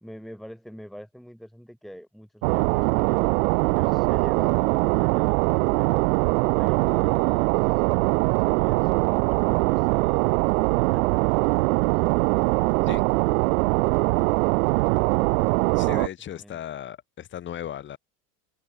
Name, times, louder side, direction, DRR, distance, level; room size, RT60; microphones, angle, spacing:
voice 1, 0.0-3.3 3.6-6.1 6.5-7.8 8.5-10.3 10.7-11.7 16.3-16.6, equal, ahead, 1.9 m, -45 dB
sound 1, 2.4-16.1, right 25 dB, 60° right, 0.9 m, -22 dB
voice 2, 15.7-18.0, left 10 dB, 25° left, 2.8 m, -36 dB
supercardioid pair, 160°, 46 cm